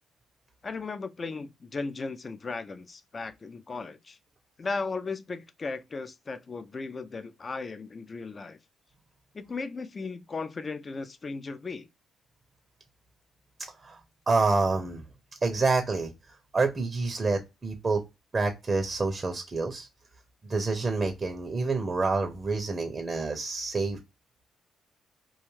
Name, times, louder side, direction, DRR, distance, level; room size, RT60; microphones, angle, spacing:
voice 1, 0.6-4.2 4.6-8.6 9.3-11.9, left 4 dB, 35° left, 0.3 m, -36 dB
voice 2, 14.3-15.0 15.4-16.1 16.5-18.0 18.3-19.9 20.4-24.0, right 3 dB, 30° right, 0.5 m, -27 dB
2.4 x 2.3 x 3.0 m
cardioid pair, 90°, 0 cm